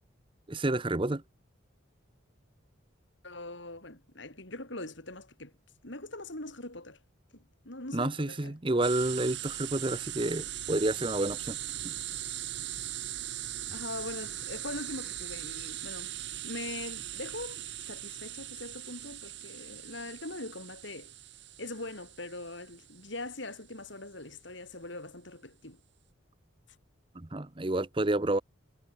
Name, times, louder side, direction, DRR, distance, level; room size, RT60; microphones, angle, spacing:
voice 1, 0.5-1.2 7.9-11.6 11.8-11.9 27.1-28.4, right 2 dB, 25° right, 0.8 m, -29 dB
voice 2, 3.2-5.5 5.8-7.0 7.3-8.9 13.7-16.1 16.4-21.1 21.6-25.8, left 2 dB, 60° left, 4.6 m, -42 dB
sound 1, 8.8-23.3, right 12 dB, 60° right, 7.4 m, -40 dB
head